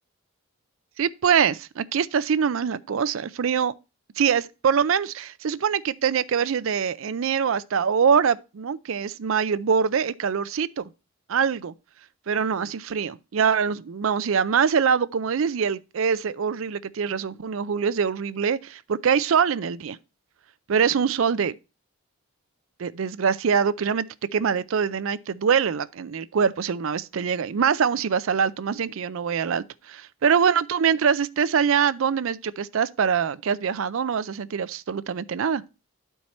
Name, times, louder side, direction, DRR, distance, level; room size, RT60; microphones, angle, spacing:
voice 1, 1.0-3.7 4.2-10.9 11.3-11.7 12.3-20.0 20.7-21.6 22.8-24.1 24.3-30.0 30.2-35.6, right 6 dB, 70° right, 0.4 m, -24 dB
11.0 x 4.6 x 4.2 m
head